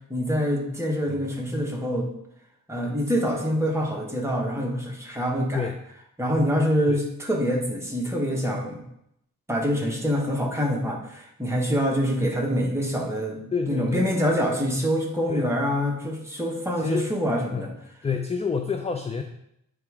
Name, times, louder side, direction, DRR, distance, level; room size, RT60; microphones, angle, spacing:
voice 1, 0.1-2.1 2.7-5.7 6.2-8.8 9.5-13.4 13.7-17.7, equal, 10° right, -1 dB, 1.0 m, -25 dB
voice 2, 13.5-14.1 15.3-15.4 16.8-17.1 17.5-17.6 18.0-19.2, left 5 dB, 20° left, 4 dB, 0.3 m, -28 dB
7.5 x 3.5 x 4.8 m, 0.77 s
wide cardioid pair, 175°, 34 cm